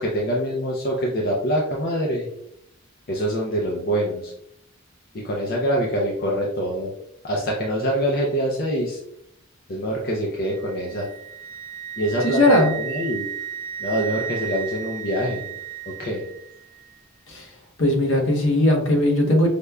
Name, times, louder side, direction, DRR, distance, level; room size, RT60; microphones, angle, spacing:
voice 1, 0.0-2.3 3.1-4.3 5.1-6.9 7.2-9.0 9.7-11.1 12.0-12.4 12.7-13.3 13.8-15.5 15.9-16.2, equal, 45° left, -2 dB, 0.4 m, -25 dB
Wind instrument woodwind instrument, 10.5-16.4, right 10 dB, 40° right, 0.3 m, -34 dB
voice 2, 12.2-12.8 17.3-17.5 17.8-19.5, left 1 dB, 65° left, 1 dB, 0.8 m, -18 dB
4.9 x 2.1 x 2.2 m, 0.75 s
head